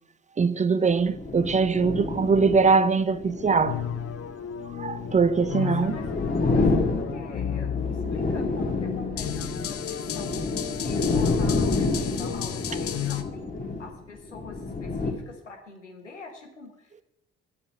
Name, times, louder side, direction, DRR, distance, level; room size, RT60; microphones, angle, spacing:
voice 1, 0.4-3.8 4.8-5.9, right 5 dB, 20° right, 0.5 m, -22 dB
sound 1, 0.9-15.1, left 3 dB, 25° left, 1.7 m, -29 dB
sound 2, 3.6-13.2, left 9 dB, 40° left, 0.8 m, -33 dB
voice 2, 5.5-6.1 6.4-13.5 13.8-17.0, left 3 dB, 90° left, 1.2 m, -45 dB
8.2 x 7.2 x 5.5 m
figure-of-eight pair, 45°, 35 cm